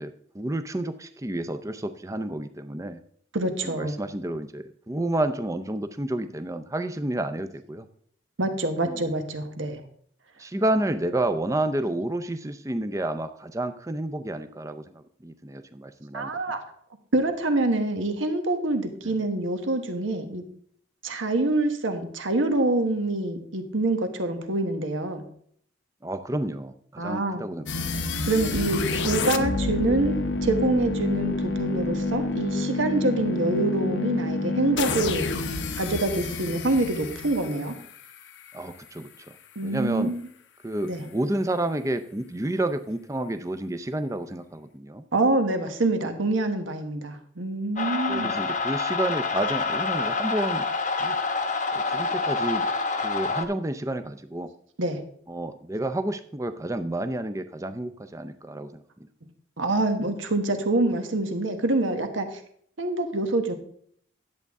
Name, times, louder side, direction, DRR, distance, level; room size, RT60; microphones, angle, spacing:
voice 1, 0.0-3.0 3.6-7.9 8.8-9.0 10.4-16.3 19.0-19.2 26.0-28.0 38.5-39.3 39.6-40.1 40.6-45.0 48.1-50.7 51.0-51.2 51.9-52.7 53.0-54.5 55.3-58.8, right 1 dB, 15° right, 10 dB, 0.5 m, -30 dB
voice 2, 3.3-3.9 8.4-9.8 16.1-16.6 17.1-20.4 21.0-25.2 27.0-27.5 28.3-35.3 35.7-37.7 39.5-40.1 40.9-41.0 45.1-48.3 54.8-55.0 59.6-62.4 62.8-63.5, right 2 dB, 85° right, 6 dB, 1.3 m, -26 dB
sound 1, 27.7-38.6, left 3 dB, 70° left, 0.8 m, -28 dB
sound 2, 47.8-53.4, left 4 dB, 40° left, 0.9 m, -27 dB
10.5 x 8.0 x 3.6 m, 0.63 s
head